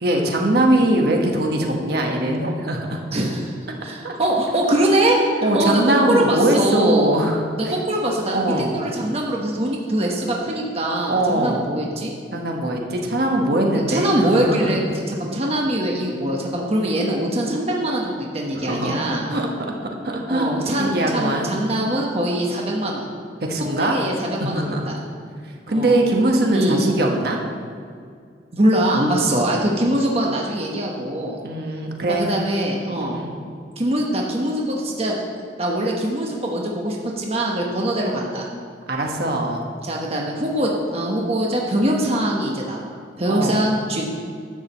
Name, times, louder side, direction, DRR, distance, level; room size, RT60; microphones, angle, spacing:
voice 1, 0.0-3.0 4.0-4.1 5.4-7.7 8.3-8.8 11.1-11.7 12.3-14.6 18.5-19.0 19.3-19.7 20.0-20.5 20.8-21.5 23.4-24.0 24.4-24.9 25.7-27.4 31.4-32.3 33.0-33.3 38.9-39.7 43.3-43.6, right 1 dB, 60° right, 1 dB, 1.2 m, -21 dB
voice 2, 3.1-3.5 3.8-5.8 6.1-7.2 7.6-12.1 13.9-19.3 20.3-23.1 23.6-25.0 25.7-26.0 26.5-26.8 28.5-31.4 32.1-33.2 33.8-35.2 35.6-38.5 39.8-44.0, right 1 dB, 35° right, -1 dB, 1.0 m, -22 dB
11.0 x 4.9 x 7.2 m, 2.2 s
head